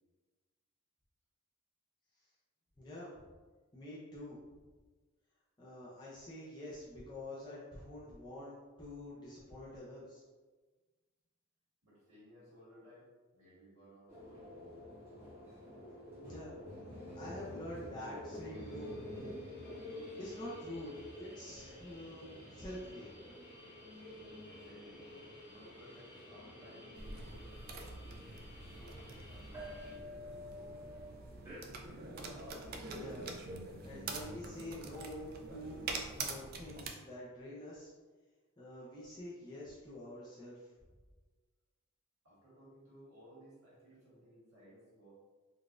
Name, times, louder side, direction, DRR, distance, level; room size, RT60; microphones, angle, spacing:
voice 1, 2.8-3.3 3.7-4.4 5.6-10.2 16.2-16.6 16.9-18.9 20.2-23.4 32.9-33.3 33.7-37.9 38.6-40.7, left 1 dB, 20° left, -8 dB, 0.5 m, -47 dB
voice 2, 11.8-14.5 24.5-25.1 25.4-28.2 28.7-30.1 42.2-45.1, equal, 90° right, -8 dB, 1.5 m, -59 dB
sound 1, 14.1-31.6, left 1 dB, 10° right, 1.0 m, -49 dB
sound 2, 18.3-30.0, left 1 dB, 45° left, 1.2 m, -59 dB
sound 3, 27.0-36.9, right 3 dB, 45° right, 0.3 m, -45 dB
3.8 x 2.3 x 2.4 m, 1.3 s
head